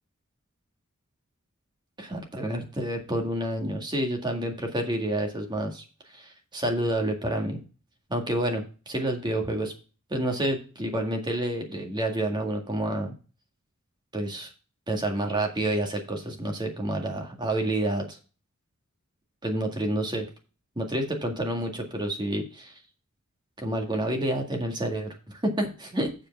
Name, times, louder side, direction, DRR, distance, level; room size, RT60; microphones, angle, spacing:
voice 1, 2.0-5.8 6.1-7.6 8.1-9.7 10.1-13.1 14.1-14.5 14.9-18.2 19.4-20.2 20.8-22.7 23.6-26.1, right 1 dB, 20° right, 2 dB, 1.9 m, -29 dB
7.6 x 5.0 x 6.6 m, 0.34 s
head